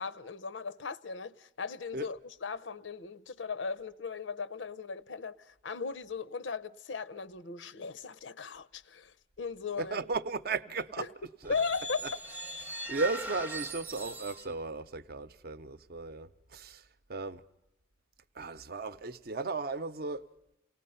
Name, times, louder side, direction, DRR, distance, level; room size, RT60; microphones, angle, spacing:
voice 1, 0.0-10.0 11.0-11.1 11.5-12.1, left 5 dB, 90° left, 0.7 m, -37 dB
voice 2, 9.8-11.1 11.4-11.5 12.6-16.8 17.1-17.4 18.4-20.2, right 3 dB, 55° right, 0.7 m, -35 dB
sound 1, 11.4-14.6, right 1 dB, 10° right, 0.7 m, -40 dB
28.5 x 19.0 x 5.6 m
head